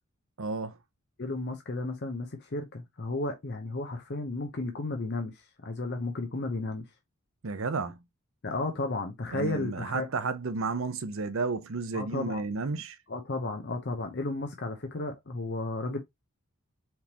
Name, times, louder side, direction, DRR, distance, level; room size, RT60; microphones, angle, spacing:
voice 1, 0.4-0.8 7.4-8.0 9.3-13.0, right 4 dB, 65° right, 0.7 m, -32 dB
voice 2, 1.2-6.9 8.4-10.1 11.9-12.4 13.1-16.0, left 2 dB, 50° left, 0.7 m, -33 dB
4.4 x 3.6 x 2.9 m
head